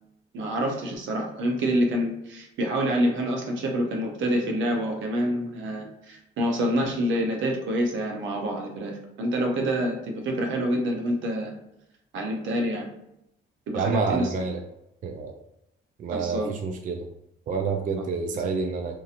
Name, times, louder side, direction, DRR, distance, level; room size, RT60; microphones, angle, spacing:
voice 1, 0.3-8.9 9.2-11.5 12.1-12.9 13.7-14.3 16.1-16.5 18.0-18.1, equal, 75° right, 2 dB, 0.7 m, -27 dB
voice 2, 13.7-14.6 15.0-15.3 16.0-17.1 17.5-19.0, right 5 dB, 45° right, 3 dB, 0.4 m, -28 dB
2.8 x 2.7 x 2.5 m, 0.83 s
cardioid pair, 90°, 20 cm